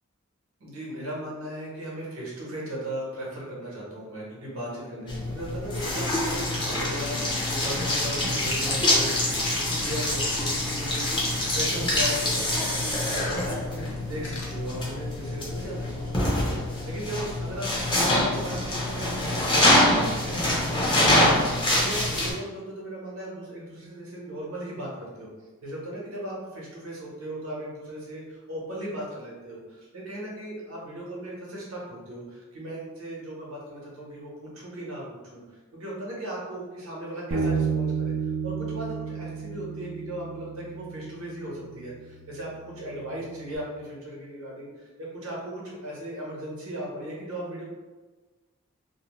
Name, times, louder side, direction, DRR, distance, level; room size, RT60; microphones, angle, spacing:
voice 1, 0.6-25.3 25.6-35.0 35.3-35.4 35.7-47.6, right 1 dB, 85° right, -4 dB, 0.9 m, -37 dB
sound 1, 5.1-22.3, left 1 dB, 20° left, 0.6 m, -25 dB
sound 2, 7.1-14.9, left 1 dB, 65° left, 0.6 m, -43 dB
Bass guitar, 37.3-43.6, right 5 dB, 65° right, 0.4 m, -32 dB
2.7 x 2.0 x 2.9 m, 1.3 s
head